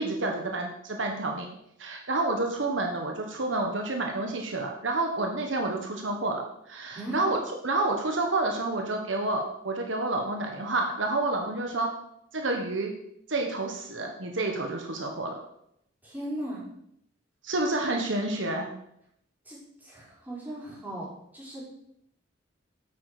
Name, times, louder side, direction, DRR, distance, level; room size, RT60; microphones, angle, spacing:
voice 1, 0.0-1.5 1.8-7.4 7.6-11.9 12.3-12.9 13.3-15.4 17.4-18.7, right 2 dB, 75° right, 2 dB, 1.5 m, -29 dB
voice 2, 16.0-16.6 19.4-21.7, right 1 dB, 10° right, -7 dB, 4.7 m, -38 dB
8.9 x 8.4 x 5.0 m, 0.74 s
head